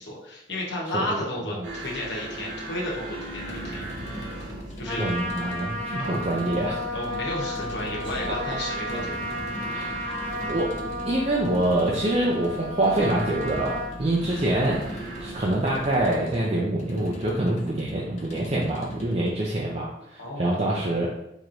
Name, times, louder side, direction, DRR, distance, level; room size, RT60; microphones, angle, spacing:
voice 1, 0.0-3.8 4.8-5.2 6.0-6.3 6.9-9.8 20.2-20.5, left 1 dB, 75° left, -3 dB, 1.1 m, -33 dB
sound 1, 1.6-16.1, right 1 dB, 85° right, 1.3 m, -41 dB
sound 2, 3.3-19.4, equal, 40° left, 0.6 m, -40 dB
Trumpet, 4.8-13.9, equal, 5° left, 0.9 m, -33 dB
voice 2, 5.0-6.8 9.7-9.9 10.5-10.7 11.0-19.9 20.1-21.1, right 1 dB, 35° right, -4 dB, 0.5 m, -25 dB
4.5 x 3.0 x 2.6 m, 0.81 s
head